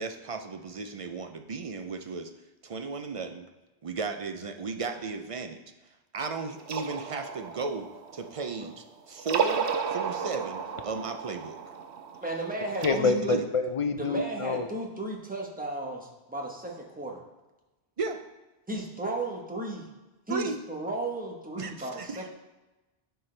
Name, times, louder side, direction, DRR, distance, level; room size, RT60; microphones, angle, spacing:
voice 1, 0.0-2.3 2.6-3.5 3.8-5.6 6.1-11.6 12.9-13.4 18.0-18.2 20.3-20.6 21.6-22.3, right 4 dB, 50° right, 6 dB, 0.4 m, -35 dB
sound 1, 6.6-8.8 9.2-12.9, right 6 dB, 80° right, 0.9 m, -33 dB
voice 2, 12.2-13.4 14.0-17.2 18.7-19.9 20.3-22.2, right 2 dB, 10° right, -1 dB, 1.0 m, -34 dB
voice 3, 12.8-14.7, left 4 dB, 50° left, 7 dB, 0.4 m, -27 dB
11.0 x 4.6 x 3.2 m, 1.1 s
omnidirectional pair, 1.1 m